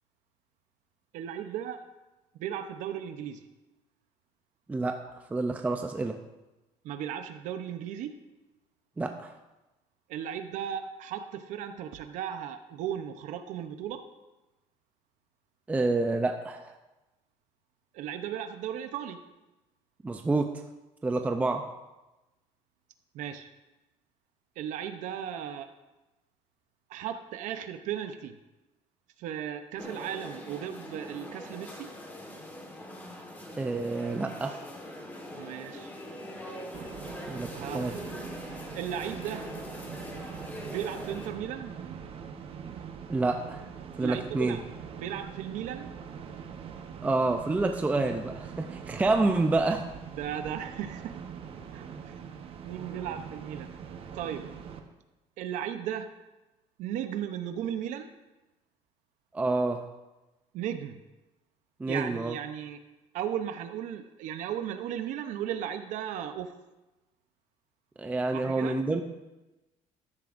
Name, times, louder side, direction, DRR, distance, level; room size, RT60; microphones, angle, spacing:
voice 1, 1.1-1.8 2.4-3.5 6.8-8.2 10.1-14.0 17.9-19.2 23.1-23.5 24.6-25.7 26.9-28.4 29.2-31.9 35.4-35.9 37.5-38.1 38.7-39.5 40.7-41.7 44.0-44.6 44.9-45.9 49.2-49.4 50.1-51.2 51.7-52.2 52.6-53.7 54.1-54.5 55.4-56.1 56.8-58.1 60.5-61.0 61.9-62.8 63.1-66.5 68.3-68.8, right 9 dB, 75° right, 9 dB, 0.7 m, -36 dB
voice 2, 4.7-5.0 5.3-6.2 9.0-9.3 15.7-16.8 20.0-20.6 21.0-21.6 33.6-34.6 37.3-37.9 43.1-43.7 44.0-44.6 47.0-49.8 59.3-59.8 61.8-62.3 68.0-69.0, right 3 dB, 10° right, 5 dB, 0.5 m, -28 dB
sound 1, 29.8-41.3, left 1 dB, 15° left, 1.4 m, -42 dB
sound 2, 36.7-54.8, right 7 dB, 45° right, 0.9 m, -43 dB
13.5 x 10.5 x 2.5 m, 1.0 s
cardioid pair, 150°, 13 cm